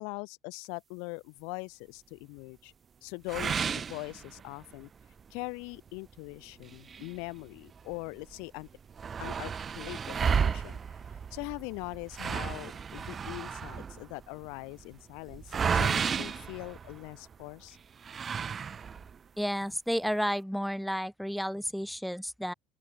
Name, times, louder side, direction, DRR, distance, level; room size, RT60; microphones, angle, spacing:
voice 1, 0.0-2.7 3.0-4.9 5.3-8.7 9.2-10.8 11.3-17.8, left 35 dB, 85° left, 4.8 m, -41 dB
sound 1, 3.3-4.7 5.2-5.3 5.7-5.8 6.6-8.0 8.3-8.4 8.6-17.3 18.0-19.2, right 6 dB, 30° right, 1.0 m, -33 dB
voice 2, 19.4-22.5, equal, ahead, 2.1 m, -31 dB
open air
cardioid pair, 130°, 0 cm